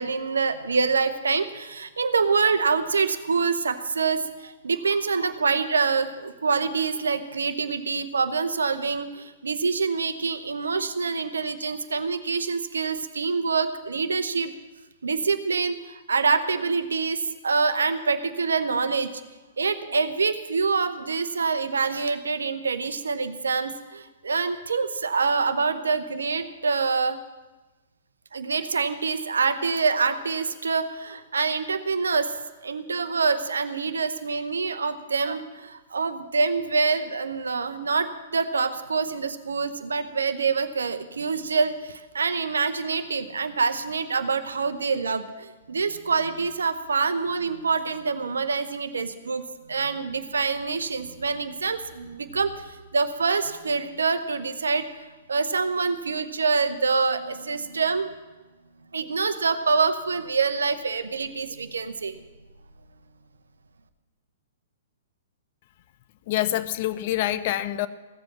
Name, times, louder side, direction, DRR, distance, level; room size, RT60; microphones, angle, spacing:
voice 1, 0.0-14.5 15.0-19.1 19.6-27.2 28.3-32.3 32.6-49.4 49.7-54.9 55.3-58.1 58.9-62.2, right 4 dB, 75° right, 10 dB, 0.9 m, -26 dB
voice 2, 66.3-67.9, left 14 dB, 45° left, 13 dB, 0.6 m, -26 dB
15.5 x 7.7 x 7.3 m, 1.2 s
figure-of-eight pair, 115°, 0 cm